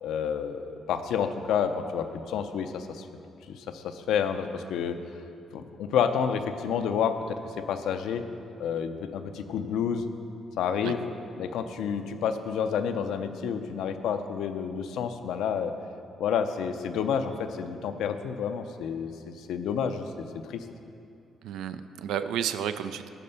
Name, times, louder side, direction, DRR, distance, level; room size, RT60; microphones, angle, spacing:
voice 1, 0.0-3.1 3.5-5.0 5.5-8.3 8.6-10.1 10.6-11.1 11.4-15.7 16.2-20.6, left 7 dB, 85° left, 8 dB, 0.5 m, -29 dB
voice 2, 21.4-23.1, right 9 dB, 85° right, 10 dB, 0.3 m, -31 dB
11.0 x 4.2 x 6.8 m, 2.6 s
cardioid pair, 90°, 0 cm